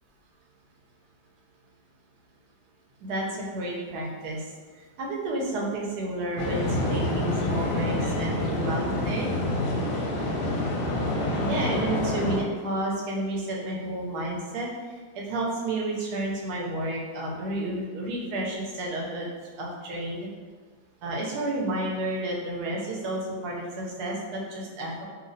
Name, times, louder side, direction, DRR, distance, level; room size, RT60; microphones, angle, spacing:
voice 1, 3.0-9.3 11.3-19.3 19.6-20.3 21.0-25.0, right 1 dB, 65° right, -3 dB, 1.0 m, -31 dB
sound 1, 6.4-12.4, left 1 dB, 70° left, 1.1 m, -27 dB
3.0 x 2.7 x 2.6 m, 1.5 s
omnidirectional pair, 2.0 m